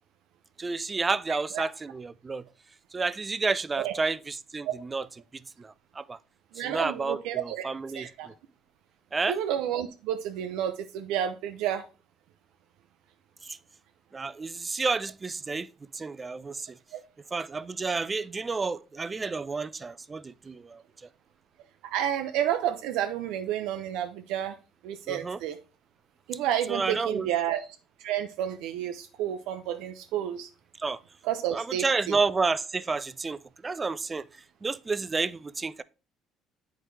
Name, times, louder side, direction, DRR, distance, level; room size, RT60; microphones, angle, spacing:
voice 1, 0.6-2.5 2.9-5.1 5.3-6.2 6.6-8.3 9.1-9.4 13.4-13.6 14.1-15.7 15.9-16.8 17.3-20.8 25.1-25.4 26.7-27.3 30.8-31.0 31.5-33.4 33.6-34.2 34.6-35.8, right 4 dB, 20° right, 0.3 m, -30 dB
voice 2, 6.5-7.7 7.9-8.3 9.3-11.8 16.9-17.0 21.8-24.6 24.8-25.6 26.3-27.7 28.0-30.5 31.2-32.2, right 10 dB, 85° right, 0.5 m, -30 dB
8.1 x 4.6 x 3.2 m
cardioid pair, 110°, 0 cm